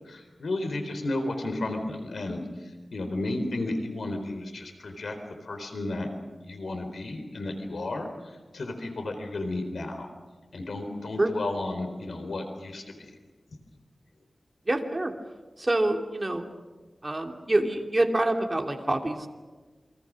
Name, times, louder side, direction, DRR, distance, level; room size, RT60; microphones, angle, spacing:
voice 1, 0.1-2.4 2.9-5.1 5.4-6.1 6.5-8.1 8.5-10.1 10.5-13.1, left 2 dB, 90° left, 6 dB, 4.1 m, -33 dB
voice 2, 14.7-15.1 15.6-16.4 17.0-19.3, right 1 dB, 30° right, 3 dB, 2.8 m, -26 dB
28.5 x 24.0 x 6.4 m, 1.3 s
wide cardioid pair, 90°, 0 cm